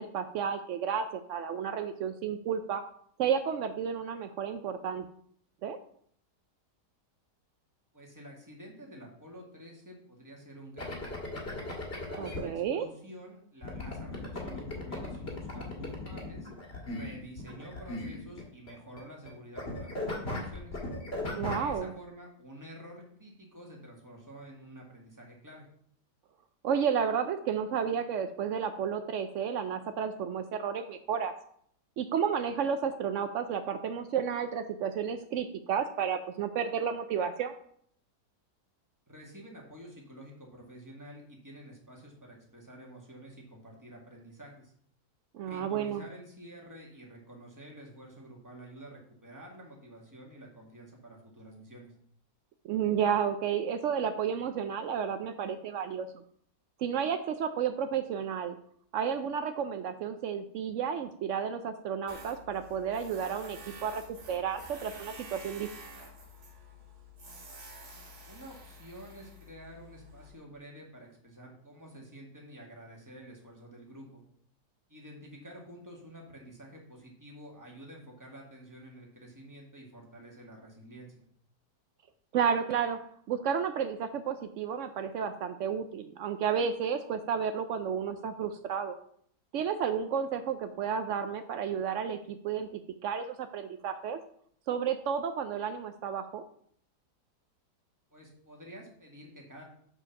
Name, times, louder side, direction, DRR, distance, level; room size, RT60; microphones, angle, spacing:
voice 1, 0.0-2.8 3.2-5.1 5.6-5.8 12.2-12.9 21.4-21.9 26.6-31.3 32.0-37.5 45.3-46.0 52.6-56.2 56.8-58.5 58.9-64.0 64.3-65.7 82.3-83.0 83.3-89.0 89.5-94.2 94.7-96.4, right 7 dB, 80° right, 9 dB, 0.6 m, -32 dB
voice 2, 7.9-11.4 12.0-16.5 16.9-20.8 21.5-25.7 39.1-44.7 45.4-51.9 68.3-74.2 74.9-81.2 98.1-99.6, right 1 dB, 10° right, -1 dB, 1.8 m, -49 dB
sound 1, 10.8-12.4 13.6-19.3 19.6-21.7, left 2 dB, 35° left, 2.0 m, -37 dB
Tools, 62.1-70.3, right 1 dB, 65° right, 1.9 m, -49 dB
6.9 x 4.8 x 5.8 m, 0.64 s
omnidirectional pair, 1.8 m